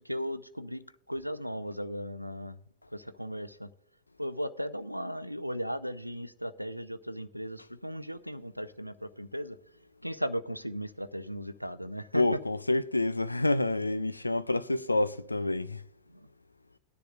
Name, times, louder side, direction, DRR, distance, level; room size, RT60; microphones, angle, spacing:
voice 1, 0.0-2.6 2.9-3.7 4.2-9.6 10.0-12.2 16.1-16.3, equal, 90° right, 0.5 m, -36 dB
voice 2, 12.1-15.8, left 2 dB, 85° left, 0.4 m, -28 dB
18.0 x 10.5 x 2.5 m
figure-of-eight pair, 90°, 0 cm